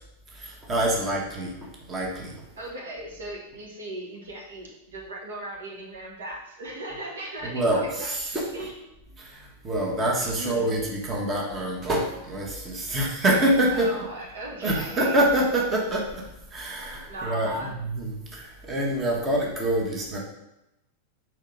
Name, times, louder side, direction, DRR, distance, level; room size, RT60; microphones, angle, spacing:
voice 1, 0.3-2.4 7.4-8.4 9.2-13.9 14.6-20.2, right 1 dB, 25° right, -1 dB, 1.5 m, -26 dB
voice 2, 2.6-8.1 8.5-8.7 9.1-9.2 10.2-10.8 13.7-15.2 17.1-17.8, right 1 dB, 65° right, -2 dB, 1.2 m, -37 dB
4.7 x 4.5 x 5.3 m, 0.91 s
figure-of-eight pair, 90°, 0 cm